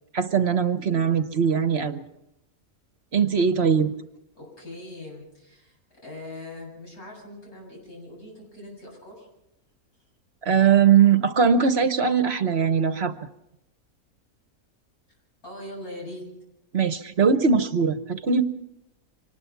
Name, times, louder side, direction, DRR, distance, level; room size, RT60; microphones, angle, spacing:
voice 1, 0.1-2.0 3.1-3.9 10.4-13.2 16.7-18.4, right 6 dB, 50° right, 11 dB, 1.1 m, -20 dB
voice 2, 4.3-5.8 6.0-9.3 15.4-16.2, left 1 dB, 85° left, -1 dB, 8.3 m, -41 dB
25.0 x 19.5 x 5.9 m, 0.86 s
omnidirectional pair, 1.5 m